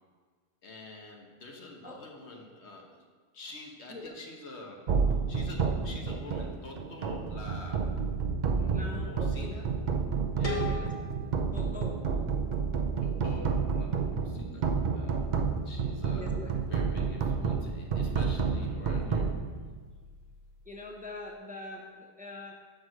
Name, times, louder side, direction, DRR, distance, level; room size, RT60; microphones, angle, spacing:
voice 1, 0.6-3.0 3.3-4.8 5.3-7.9 8.5-9.7 10.3-10.9 13.0-15.2 15.6-16.3 16.7-19.3, left 2 dB, 85° left, 1 dB, 1.3 m, -47 dB
sound 1, 4.9-20.2, right 5 dB, 50° right, 0.7 m, -30 dB
voice 2, 8.7-9.6 10.6-10.9 11.5-12.0 14.3-14.7 16.2-16.5 20.6-22.6, left 1 dB, 10° right, -2 dB, 0.8 m, -43 dB
sound 2, 10.4-13.3, left 2 dB, 35° left, 1.2 m, -40 dB
6.0 x 5.1 x 6.3 m, 1.6 s
omnidirectional pair, 1.1 m